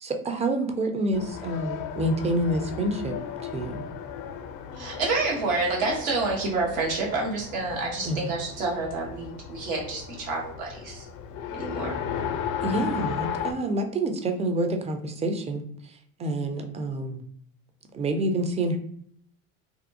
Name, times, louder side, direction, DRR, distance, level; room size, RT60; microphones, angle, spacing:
voice 1, 0.0-3.2 3.4-3.8 8.0-8.2 12.6-17.2 17.9-18.8, right 1 dB, 15° right, 5 dB, 0.3 m, -28 dB
Race car auto racing, 1.1-13.5, left 8 dB, 55° left, 0.5 m, -35 dB
voice 2, 4.7-11.1 11.5-12.0, right 3 dB, 90° right, -3 dB, 1.1 m, -28 dB
2.6 x 2.3 x 2.6 m, 0.66 s
supercardioid pair, 85°, 40 cm